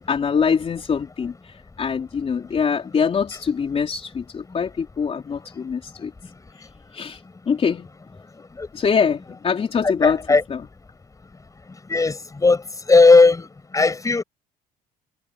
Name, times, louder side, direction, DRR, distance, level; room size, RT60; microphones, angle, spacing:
voice 1, 0.0-6.1 6.9-7.9 8.7-10.2 10.5-10.7, left 6 dB, 35° left, 3.8 m, -24 dB
voice 2, 10.0-10.4 11.9-12.6 12.9-13.5 13.7-14.2, left 3 dB, 20° left, 7.4 m, -15 dB
cardioid pair, 110°, 17 cm